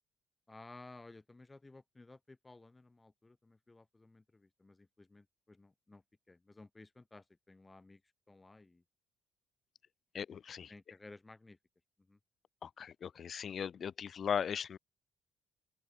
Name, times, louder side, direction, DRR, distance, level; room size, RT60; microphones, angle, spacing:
voice 1, 0.5-8.0 8.3-8.8 10.7-11.6 12.1-12.2, left 2 dB, 15° left, 7.1 m, -56 dB
voice 2, 10.1-10.7 12.6-14.8, left 7 dB, 40° left, 1.9 m, -38 dB
open air
cardioid pair, 155°, 0 cm